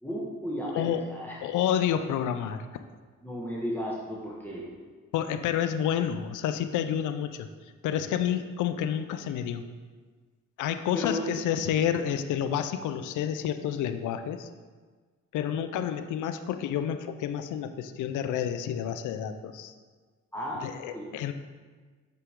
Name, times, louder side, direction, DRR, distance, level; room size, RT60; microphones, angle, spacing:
voice 1, 0.0-1.4 3.2-4.6 10.9-11.2 20.3-20.6 20.9-21.1, left 1 dB, 5° left, -5 dB, 1.4 m, -34 dB
voice 2, 0.7-1.1 1.4-2.7 5.1-7.5 7.8-9.6 10.6-14.5 15.3-19.7 20.6-21.3, left 9 dB, 85° left, 9 dB, 0.5 m, -29 dB
6.3 x 5.6 x 3.6 m, 1.4 s
cardioid pair, 75°, 30 cm